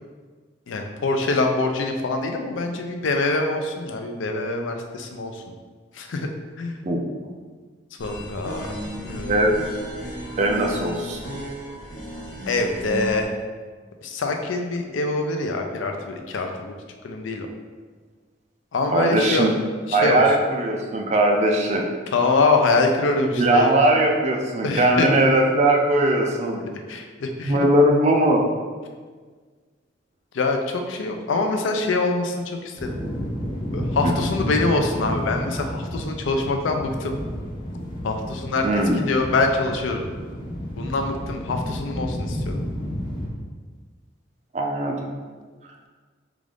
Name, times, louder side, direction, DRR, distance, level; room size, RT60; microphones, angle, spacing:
voice 1, 0.7-5.4 5.9-6.3 6.6-6.8 8.0-8.7 9.0-9.4 12.5-13.4 14.0-16.7 17.0-17.5 18.7-19.5 19.9-20.2 22.1-23.7 24.6-25.1 26.9-27.7 30.3-33.0 33.7-37.1 38.0-38.7 39.1-40.1 40.8-42.6, left 3 dB, 80° left, 4 dB, 0.4 m, -24 dB
sound 1, 8.0-13.2, equal, 45° left, 1.2 m, -34 dB
voice 2, 10.4-11.2 18.9-19.5 19.9-21.8 23.4-26.6 27.4-28.4 34.0-34.1 38.6-39.1 44.5-45.1, right 1 dB, 35° right, 1 dB, 0.4 m, -19 dB
sound 2, 32.8-43.3, equal, 25° left, 0.6 m, -31 dB
3.7 x 2.4 x 3.4 m, 1.5 s
head